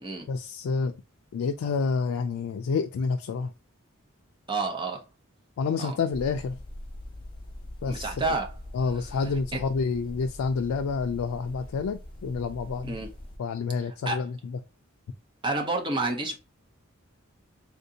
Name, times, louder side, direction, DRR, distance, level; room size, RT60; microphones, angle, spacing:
voice 1, 0.3-0.9 1.3-3.5 5.6-6.6 7.8-8.4 8.7-13.0 13.4-14.6, left 4 dB, 90° left, 0.3 m, -29 dB
voice 2, 4.5-5.0 5.8-6.0 7.9-8.5 9.5-9.6 12.8-13.1 14.1-14.2 15.4-16.3, right 3 dB, 25° right, 0.6 m, -29 dB
sound 1, 6.1-13.4, left 1 dB, 25° left, 0.7 m, -43 dB
3.5 x 2.6 x 2.7 m
head